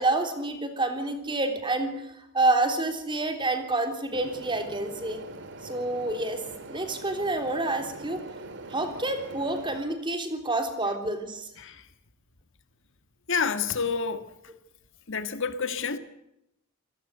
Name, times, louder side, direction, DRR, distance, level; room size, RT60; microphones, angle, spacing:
voice 1, 0.0-1.9 2.3-5.2 5.6-6.4 6.7-8.2 8.7-11.5, right 2 dB, 20° right, 3.5 m, -28 dB
sound 1, 4.1-9.8, right 2 dB, 55° right, 2.3 m, -43 dB
voice 2, 11.6-11.9 13.3-14.3 15.1-16.0, left 5 dB, 60° left, 1.6 m, -29 dB
27.0 x 18.0 x 8.0 m
head